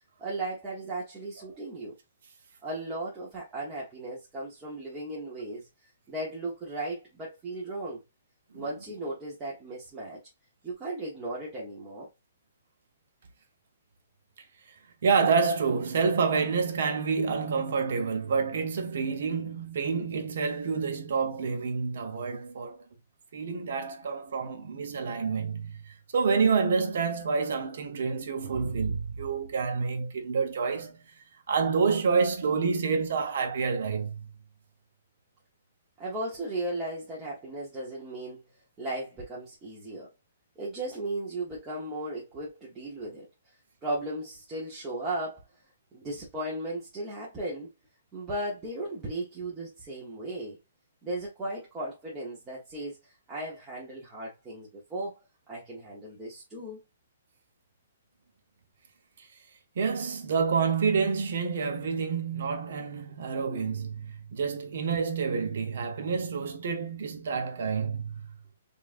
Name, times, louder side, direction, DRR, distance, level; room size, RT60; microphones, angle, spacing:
voice 1, 0.2-2.0 2.6-5.7 6.1-8.0 8.5-10.2 10.6-12.1 36.0-38.5 38.8-40.1 40.6-43.3 43.8-45.4 45.9-47.7 48.1-50.6 51.0-55.2 55.5-56.8, right 1 dB, 10° right, 1.0 m, -36 dB
voice 2, 15.0-22.8 23.3-31.0 31.5-34.3 59.8-68.4, right 5 dB, 55° right, 1.0 m, -28 dB
5.3 x 2.5 x 2.5 m
hypercardioid pair, 175°, 0 cm